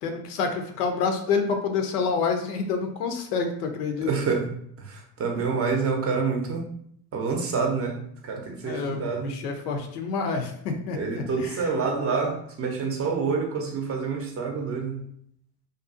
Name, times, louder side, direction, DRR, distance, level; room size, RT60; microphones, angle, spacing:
voice 1, 0.0-4.1 8.6-11.7, left 5 dB, 70° left, 5 dB, 0.6 m, -28 dB
voice 2, 4.0-4.5 4.8-6.6 7.1-9.4 10.9-15.0, right 5 dB, 30° right, 1 dB, 0.6 m, -27 dB
2.5 x 2.3 x 2.5 m, 0.67 s
hypercardioid pair, 70°, 49 cm